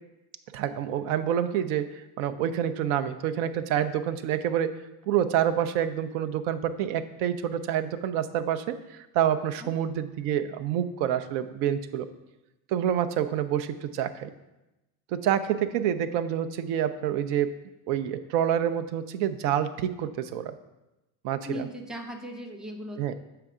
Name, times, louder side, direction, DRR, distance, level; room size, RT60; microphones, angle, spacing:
voice 1, 0.5-4.7 5.1-12.1 12.7-14.3 15.1-17.5 17.9-20.5 21.2-21.7 23.0-23.1, right 10 dB, 85° right, 10 dB, 0.6 m, -27 dB
voice 2, 21.4-23.1, equal, ahead, 2 dB, 0.6 m, -38 dB
6.7 x 4.5 x 3.6 m, 0.99 s
supercardioid pair, 90°, 47 cm